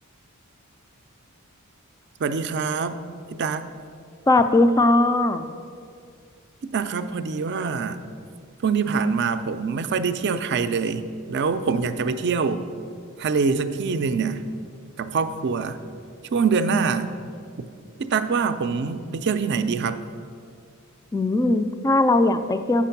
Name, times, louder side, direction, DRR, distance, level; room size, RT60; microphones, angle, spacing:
voice 1, 2.2-3.0 3.4-3.6 6.6-8.0 8.6-12.7 13.2-14.4 15.0-15.8 16.3-17.1 18.0-20.0, right 5 dB, 50° right, 11 dB, 0.4 m, -24 dB
voice 2, 4.3-5.5 21.1-22.9, left 2 dB, 15° left, 9 dB, 0.3 m, -19 dB
8.2 x 5.9 x 5.8 m, 2.3 s
head